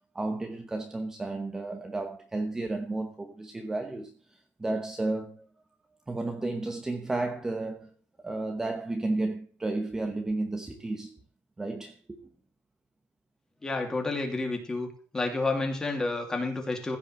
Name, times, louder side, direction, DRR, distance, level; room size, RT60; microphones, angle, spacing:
voice 1, 0.1-5.5 6.1-7.9 8.2-11.2 11.6-12.3, right 2 dB, 10° right, 1.0 m, -32 dB
voice 2, 13.6-14.9 15.1-17.0, left 3 dB, 10° left, 2.7 m, -30 dB
15.5 x 5.4 x 7.6 m
cardioid pair, 170°, 5 cm